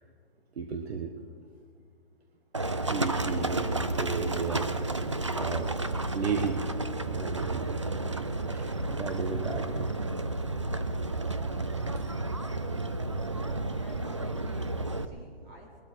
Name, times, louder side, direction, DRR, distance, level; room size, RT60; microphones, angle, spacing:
voice 1, 0.6-1.1 2.9-4.7 5.3-5.7 6.1-6.6 7.0-7.7 8.5-9.9 11.9-12.1, right 5 dB, 80° right, 3 dB, 1.6 m, -34 dB
Livestock farm animals working animals, 2.5-15.1, right 2 dB, 30° right, 0.3 m, -31 dB
voice 2, 13.6-15.8, equal, 15° right, -1 dB, 1.7 m, -50 dB
21.0 x 12.5 x 4.7 m, 2.2 s
hypercardioid pair, 180°, 31 cm